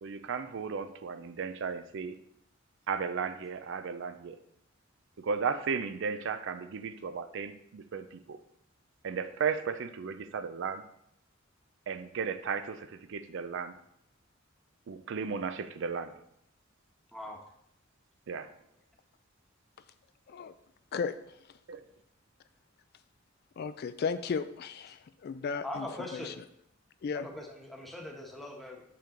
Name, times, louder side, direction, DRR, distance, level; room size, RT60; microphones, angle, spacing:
voice 1, 0.0-2.2 2.9-4.4 5.2-8.4 9.0-10.8 11.9-13.8 14.9-16.1 18.3-18.5 21.7-21.8, right 6 dB, 65° right, 0.4 m, -35 dB
voice 2, 23.6-25.9 26.1-26.3 27.0-27.3, left 5 dB, 50° left, 0.3 m, -35 dB
voice 3, 25.6-26.4 27.1-28.8, left 1 dB, ahead, 1.1 m, -41 dB
6.8 x 5.7 x 3.8 m
head